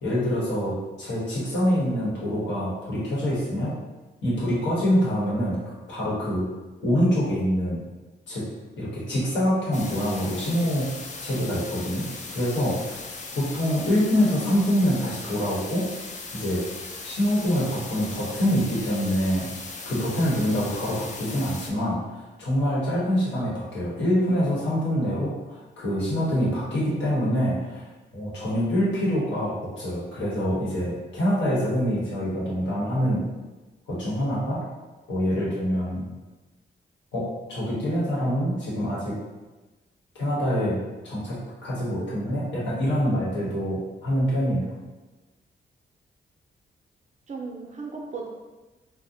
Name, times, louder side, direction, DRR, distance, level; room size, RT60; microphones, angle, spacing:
voice 1, 0.0-3.7 4.2-5.6 5.9-6.5 6.8-7.8 8.3-8.5 8.8-10.9 11.2-13.0 13.3-15.9 16.3-16.6 17.0-19.5 19.9-33.2 33.9-34.6 35.1-36.1 37.1-39.2 40.1-44.7, equal, 85° left, -7 dB, 1.0 m, -25 dB
sound 1, 9.7-21.7, left 3 dB, 40° left, 0.4 m, -38 dB
voice 2, 47.3-48.3, right 4 dB, 40° right, 0 dB, 0.5 m, -36 dB
2.5 x 2.1 x 2.6 m, 1.2 s
cardioid pair, 70°, 18 cm